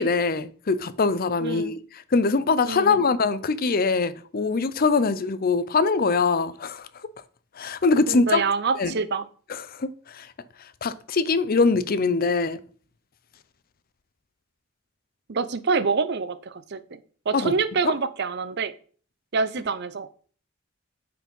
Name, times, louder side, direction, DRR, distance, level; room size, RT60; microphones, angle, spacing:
voice 1, 0.0-1.8 2.1-6.9 7.6-8.4 8.8-8.9 9.5-10.3 10.8-12.6 17.3-17.5 17.8-17.9, left 4 dB, 45° left, 0.6 m, -23 dB
voice 2, 1.4-1.7 2.6-3.1 8.1-9.2 15.3-17.0 17.3-18.7 19.3-20.1, right 5 dB, 55° right, 0.6 m, -26 dB
9.2 x 5.0 x 5.4 m
head